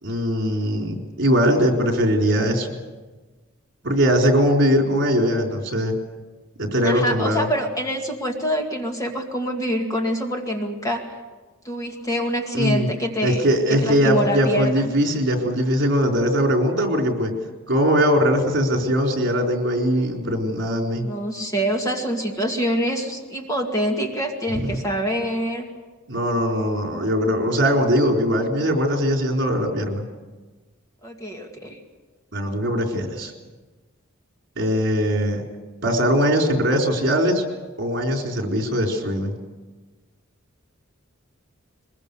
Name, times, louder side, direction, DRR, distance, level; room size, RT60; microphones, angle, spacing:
voice 1, 0.0-2.7 3.8-6.0 6.6-7.5 12.5-12.9 13.2-17.3 17.7-21.1 26.1-30.0 32.3-33.3 34.6-35.4 35.8-37.4 37.8-39.4, equal, 60° right, 1 dB, 4.0 m, -21 dB
voice 2, 6.8-11.0 11.6-13.4 13.7-14.9 21.0-25.7 31.0-31.8, equal, 15° left, 2 dB, 2.2 m, -25 dB
22.5 x 22.0 x 6.9 m, 1.3 s
head